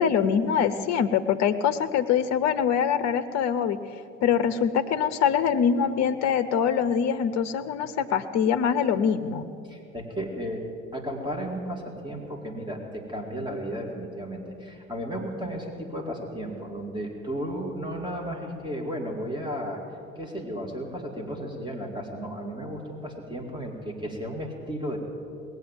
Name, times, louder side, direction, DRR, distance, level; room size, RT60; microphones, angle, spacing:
voice 1, 0.0-3.8 4.2-9.5, left 7 dB, 45° left, 10 dB, 0.8 m, -24 dB
voice 2, 9.6-10.6 10.9-19.8 20.2-25.0, equal, 10° right, 0 dB, 2.5 m, -34 dB
19.5 x 8.1 x 7.5 m, 2.4 s
figure-of-eight pair, 55°, 36 cm